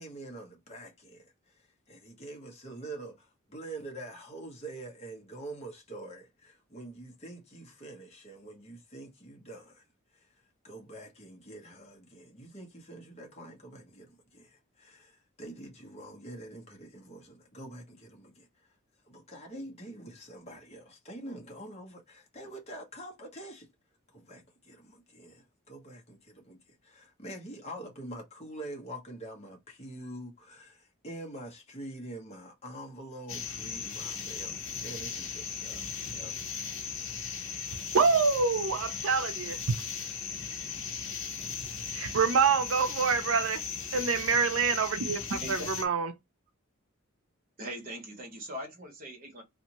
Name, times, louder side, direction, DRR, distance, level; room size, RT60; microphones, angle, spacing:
voice 1, 0.0-9.8 10.1-10.3 10.6-18.7 19.0-23.7 24.1-36.4, right 1 dB, 30° left, 1.1 m, -45 dB
sound 1, 33.3-45.9, left 6 dB, 70° left, 0.8 m, -37 dB
voice 2, 37.9-39.6 41.9-43.6 43.9-46.1, right 5 dB, 75° right, 0.5 m, -26 dB
voice 3, 47.6-49.4, equal, 45° right, 1.2 m, -41 dB
2.7 x 2.5 x 2.9 m
head